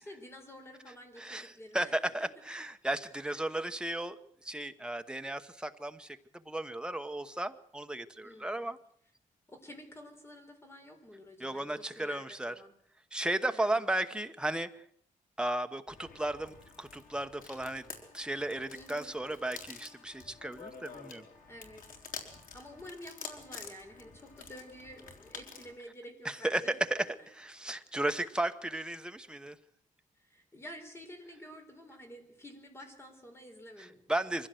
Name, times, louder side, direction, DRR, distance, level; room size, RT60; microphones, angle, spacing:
voice 1, 0.0-1.9 3.2-3.4 8.2-8.7 9.5-12.7 13.5-13.8 18.7-19.2 21.5-21.9 22.5-26.8 30.2-34.0, equal, 20° left, 5 dB, 4.1 m, -50 dB
voice 2, 1.2-6.2 6.5-8.8 11.4-12.5 13.1-14.8 15.4-17.8 18.1-21.2 26.2-29.6 33.8-34.5, right 1 dB, 5° right, 8 dB, 1.0 m, -35 dB
sound 1, 15.9-25.7, left 5 dB, 80° left, 3.8 m, -49 dB
24.0 x 16.0 x 7.9 m, 0.65 s
wide cardioid pair, 170°, 14 cm